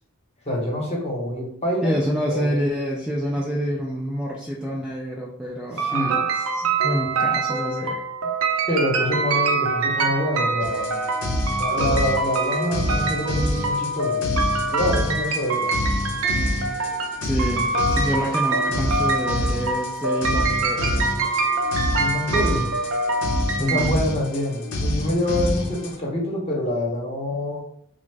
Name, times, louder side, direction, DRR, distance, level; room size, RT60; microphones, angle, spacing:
voice 1, 0.4-1.9 2.3-2.5 5.8-6.1 8.7-10.9 11.6-14.2 14.7-15.7 22.0-22.7 23.6-27.6, left 1 dB, 30° left, -2 dB, 0.9 m, -26 dB
voice 2, 1.8-8.0 17.2-21.0 23.6-24.0, equal, 5° right, -4 dB, 0.3 m, -27 dB
sound 1, 5.8-23.9, right 3 dB, 65° right, 0.5 m, -25 dB
sound 2, 10.6-26.0, left 1 dB, 85° left, 0.7 m, -27 dB
3.6 x 2.0 x 3.3 m, 0.69 s
head